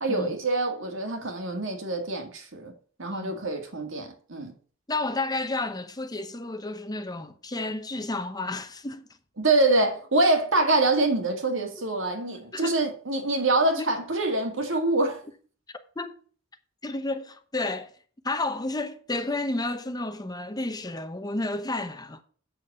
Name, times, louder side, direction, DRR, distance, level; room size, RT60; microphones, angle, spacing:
voice 1, 0.0-2.7 3.0-4.5 9.4-15.2, right 2 dB, 65° right, 2.1 m, -25 dB
voice 2, 3.1-3.4 4.9-9.1 12.5-12.8 13.8-14.0 16.0-16.2 16.8-17.9 18.2-22.2, left 2 dB, 20° left, 0.8 m, -31 dB
8.0 x 6.5 x 6.7 m
head